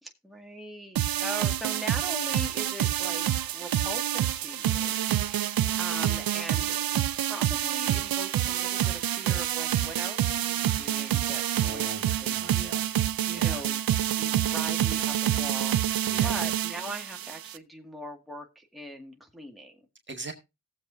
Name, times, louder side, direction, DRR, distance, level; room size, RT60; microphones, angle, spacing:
voice 1, 0.0-3.3 3.5-6.8 7.1-11.9 12.2-12.4 13.0-13.9 14.1-19.8, right 1 dB, ahead, 1 dB, 2.0 m, -41 dB
sound 1, 1.0-17.6, right 11 dB, 65° right, 0.6 m, -27 dB
voice 2, 11.6-12.9 13.3-13.6 16.1-16.5 20.1-20.3, right 4 dB, 30° right, 3 dB, 1.8 m, -40 dB
18.0 x 7.6 x 2.7 m, 0.25 s
cardioid pair, 90°, 38 cm